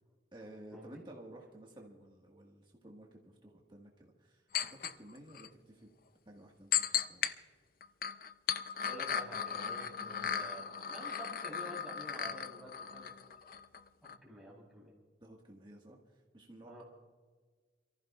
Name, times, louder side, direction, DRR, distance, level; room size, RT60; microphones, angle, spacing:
voice 1, 0.3-5.9 6.2-7.4 9.9-10.1 15.2-16.8, right 1 dB, 25° right, -1 dB, 1.7 m, -54 dB
sound 1, 4.5-4.9 5.3-5.5 6.7-7.3 7.8-13.8 14.0-14.2, left 8 dB, 50° left, 0.5 m, -36 dB
voice 2, 8.8-13.1 14.0-15.0 16.6-16.8, equal, ahead, -5 dB, 3.7 m, -49 dB
28.5 x 14.5 x 2.4 m, 1.5 s
head